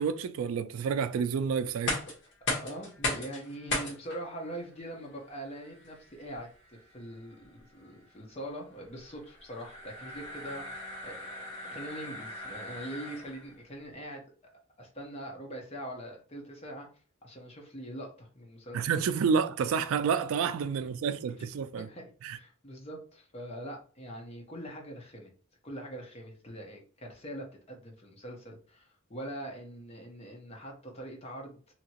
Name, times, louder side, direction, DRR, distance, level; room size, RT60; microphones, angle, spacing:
voice 1, 0.0-2.0 18.7-21.9 22.2-22.4, right 6 dB, 80° right, 0.3 m, -29 dB
sound 1, 1.7-13.6, left 2 dB, 60° left, 1.2 m, -39 dB
voice 2, 2.6-14.2 14.8-16.9 17.2-18.9 20.8-20.9 21.4-21.5 21.9-25.3 25.6-31.7, right 1 dB, 30° left, 0.9 m, -43 dB
2.9 x 2.8 x 2.8 m
head